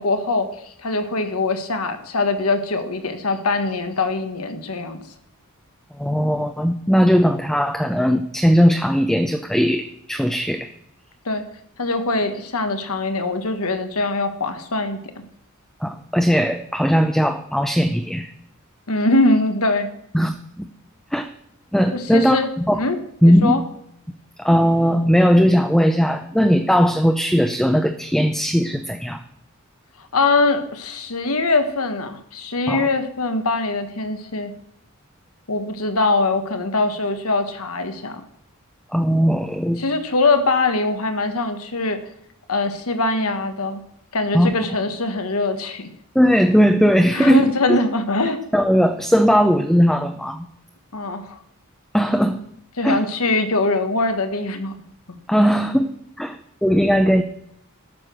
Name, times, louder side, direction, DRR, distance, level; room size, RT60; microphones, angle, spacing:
voice 1, 0.0-5.0 11.2-11.4 11.8-15.0 18.9-19.9 21.9-22.5 22.7-23.0 23.2-23.6 30.1-34.5 35.5-38.2 39.8-42.0 42.5-43.8 44.1-45.9 47.1-48.4 50.9-51.4 52.8-54.7, left 3 dB, 90° left, 8 dB, 1.4 m, -22 dB
voice 2, 6.0-10.7 15.8-18.3 20.1-20.7 21.1-21.3 21.7-22.4 22.7-22.8 23.2-23.6 24.4-29.2 32.7-32.9 38.9-39.8 44.3-44.5 46.1-47.4 47.7-47.8 48.5-50.5 51.9-52.4 52.8-53.0 55.3-55.9 56.2-57.2, equal, ahead, 6 dB, 0.5 m, -18 dB
12.0 x 6.9 x 6.2 m, 0.73 s
head